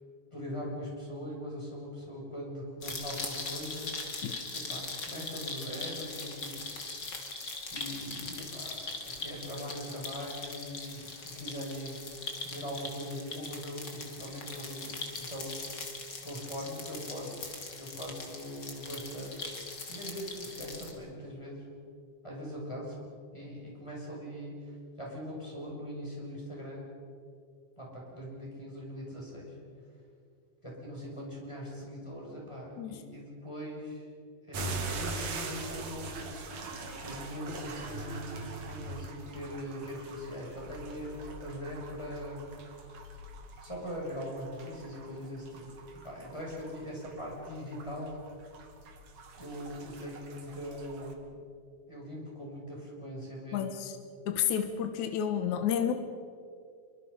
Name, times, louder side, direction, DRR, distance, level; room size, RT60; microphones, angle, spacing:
voice 1, 0.3-3.9 4.5-6.6 7.7-12.0 12.4-15.8 16.2-19.5 19.9-21.7 22.2-26.9 27.8-29.6 30.6-34.1 34.5-36.3 37.0-42.5 43.6-45.6 45.9-48.2 49.4-51.4 51.9-53.8, equal, 10° left, -4 dB, 7.1 m, -41 dB
sound 1, 2.8-20.9, left 3 dB, 35° left, 3.3 m, -41 dB
sound 2, 34.5-51.1, right 3 dB, 60° right, 3.5 m, -42 dB
voice 2, 53.5-53.9 54.3-55.9, left 9 dB, 75° left, 7 dB, 2.6 m, -30 dB
27.0 x 25.0 x 5.6 m, 2.3 s
omnidirectional pair, 3.5 m